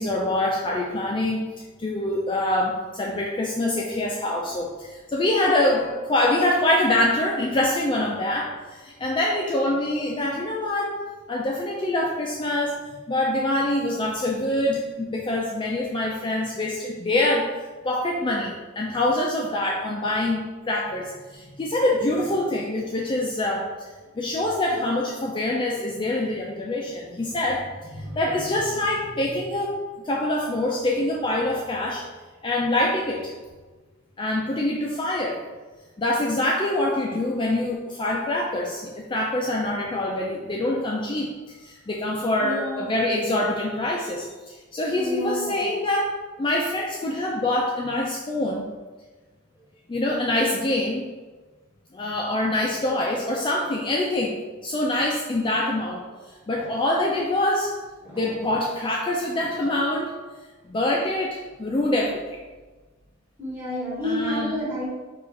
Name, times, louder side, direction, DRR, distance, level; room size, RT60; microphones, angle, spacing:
voice 1, 0.0-1.5 1.8-11.0 11.3-12.8 13.1-17.5 17.8-23.9 24.2-27.6 27.9-29.8 30.0-32.1 32.4-33.3 34.2-35.4 36.0-48.6 49.9-51.0 51.9-57.7 58.1-60.1 60.6-62.2 64.0-64.5, left 1 dB, 25° left, -2 dB, 0.4 m, -25 dB
voice 2, 27.9-28.5 42.4-42.9 44.9-45.7 56.6-56.7 58.0-58.5 63.4-64.9, left 1 dB, 10° right, -7 dB, 1.3 m, -31 dB
4.8 x 2.4 x 3.7 m, 1.3 s
head